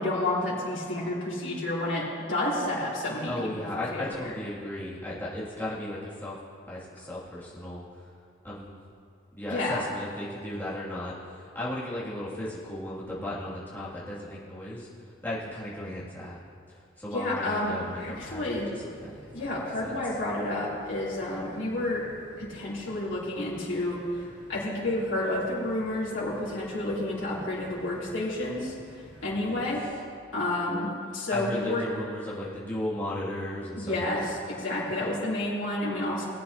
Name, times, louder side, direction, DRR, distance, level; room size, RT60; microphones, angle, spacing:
voice 1, 0.0-3.5 3.9-4.2 9.5-9.8 17.1-18.7 19.3-22.0 22.4-28.7 29.2-29.8 30.3-31.8 33.8-36.3, left 1 dB, 85° left, -8 dB, 3.0 m, -30 dB
voice 2, 3.3-6.4 6.7-8.1 8.4-8.8 9.3-14.9 15.2-16.4 16.7-19.4 19.8-20.0 29.1-29.7 31.3-34.3 34.9-35.1, left 1 dB, 10° left, -9 dB, 2.2 m, -36 dB
sound 1, 17.6-29.9, equal, 20° right, 2.8 m, -51 dB
19.5 x 8.7 x 2.8 m, 2.3 s
head